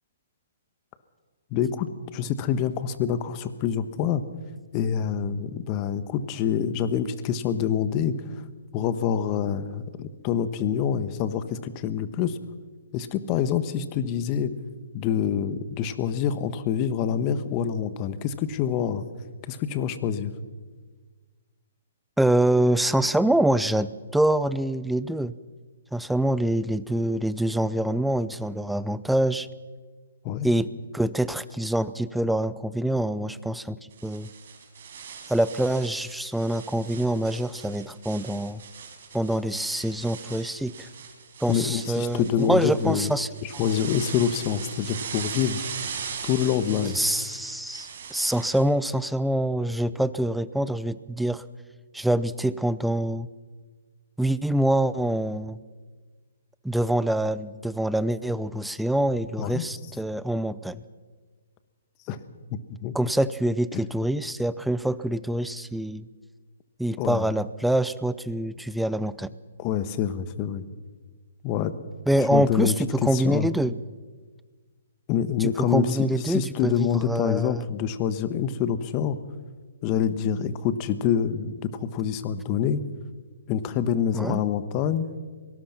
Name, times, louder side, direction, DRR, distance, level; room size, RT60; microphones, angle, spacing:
voice 1, 1.5-4.2 4.7-8.1 8.7-12.4 12.9-14.5 14.9-19.0 19.4-20.3 30.2-30.5 41.5-43.1 43.4-45.6 46.2-47.0 59.4-59.6 62.1-62.2 62.7-62.9 63.7-63.8 67.0-67.3 69.6-70.6 71.4-71.7 72.3-72.7 73.0-73.5 75.1-76.0 76.3-79.2 79.8-82.8 83.5-85.1, left 8 dB, 30° left, 12 dB, 1.3 m, -26 dB
voice 2, 22.2-25.3 25.9-29.5 30.4-30.7 30.9-34.3 35.3-38.6 39.1-40.9 41.4-43.3 46.9-51.4 51.9-53.3 54.2-55.6 56.6-60.8 62.9-66.1 66.8-69.3 72.1-73.8 75.4-77.6 84.1-84.4, right 1 dB, ahead, 16 dB, 0.6 m, -25 dB
sound 1, 33.9-48.6, right 6 dB, 55° right, 4.8 m, -40 dB
23.5 x 19.0 x 5.9 m, 1.4 s
hypercardioid pair, 140°, 0 cm